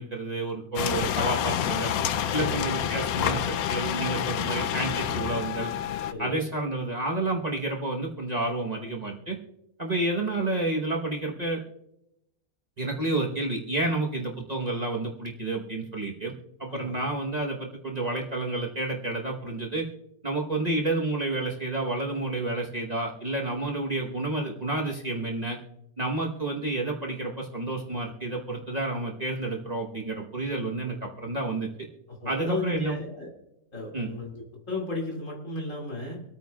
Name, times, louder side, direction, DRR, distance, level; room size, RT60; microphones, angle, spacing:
voice 1, 0.0-1.9 2.3-5.7 6.2-9.4 9.8-11.6 12.8-16.3 16.6-19.8 20.2-25.6 26.0-31.7 32.2-33.0 33.9-34.1, right 2 dB, 30° right, -2 dB, 1.1 m, -30 dB
sound 1, 0.8-6.1, left 9 dB, 85° left, 1.1 m, -28 dB
voice 2, 2.3-2.7 6.1-6.4 16.7-17.0 32.1-33.3 33.7-36.2, left 2 dB, 60° left, -1 dB, 2.9 m, -34 dB
25.0 x 9.1 x 2.3 m, 0.85 s
omnidirectional pair, 1.5 m